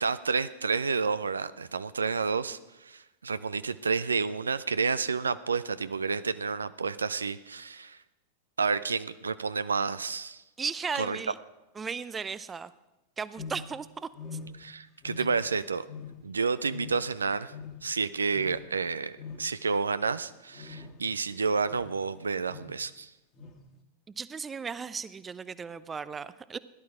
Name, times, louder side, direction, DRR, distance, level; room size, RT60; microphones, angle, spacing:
voice 1, 0.0-8.0 8.6-10.4 10.9-11.2 14.6-15.8 16.2-17.5 17.8-19.1 19.4-23.1, right 5 dB, 75° right, 15 dB, 0.4 m, -30 dB
voice 2, 10.6-11.3 11.8-12.7 13.2-14.1 24.2-26.6, right 5 dB, 15° right, 17 dB, 0.5 m, -36 dB
sound 1, 13.4-13.8 14.1-14.7 15.0-15.5 15.8-16.3 16.7-17.1 17.5-17.9 18.3-18.6 19.2-19.5 20.5-21.1 21.6-22.0 22.5-22.8 23.3-23.6, left 5 dB, 30° left, 1.6 m, -43 dB
16.5 x 11.0 x 4.9 m, 1.0 s
figure-of-eight pair, 90°, 0 cm